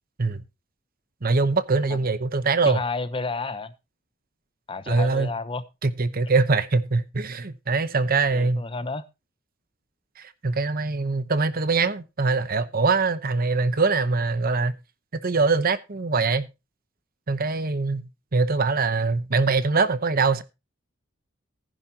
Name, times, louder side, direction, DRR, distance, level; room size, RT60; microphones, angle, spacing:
voice 1, 1.2-2.8 4.9-5.3 5.8-8.6 10.2-14.7 15.2-16.5 17.3-20.4, right 4 dB, 45° right, 0.9 m, -23 dB
voice 2, 2.7-3.7 4.7-5.6 8.3-9.0, left 3 dB, 25° left, 0.9 m, -31 dB
15.0 x 10.5 x 2.9 m
head